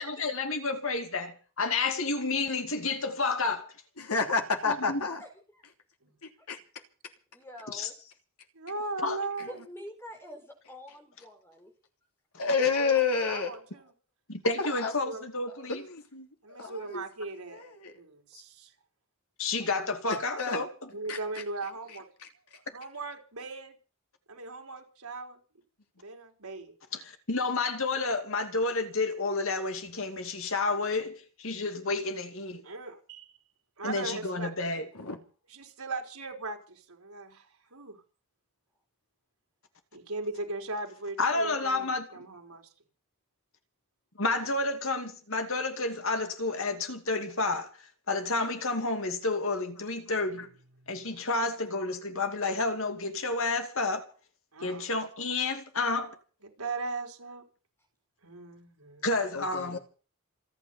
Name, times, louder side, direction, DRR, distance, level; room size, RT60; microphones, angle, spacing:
voice 1, 0.0-3.7 4.6-5.0 7.7-7.9 9.0-9.2 14.3-15.8 19.4-20.9 26.9-32.7 33.8-34.9 41.2-42.2 44.2-50.5 50.9-54.0 54.6-56.1 59.0-59.8, left 3 dB, 65° left, 2.5 m, -30 dB
voice 2, 4.0-5.2 6.5-6.6 12.4-13.5 14.6-14.9 15.7-16.3 16.6-17.0 17.5-17.9 20.1-20.6 21.1-21.2 34.9-35.2 59.3-59.8, left 5 dB, 90° left, 3.1 m, -29 dB
voice 3, 7.3-7.9 9.5-11.7 19.6-19.7, left 1 dB, 10° left, 4.5 m, -46 dB
voice 4, 8.5-9.6 12.7-13.9 15.0-15.2 16.4-17.6 17.9-18.7 20.9-22.1 22.7-23.8 24.3-25.4 26.0-26.7 32.6-33.3 33.8-34.5 35.5-38.0 39.9-42.7 50.8-51.1 54.5-54.9 56.4-57.4 58.2-59.1, right 3 dB, 90° right, 4.4 m, -38 dB
28.0 x 9.4 x 5.6 m
head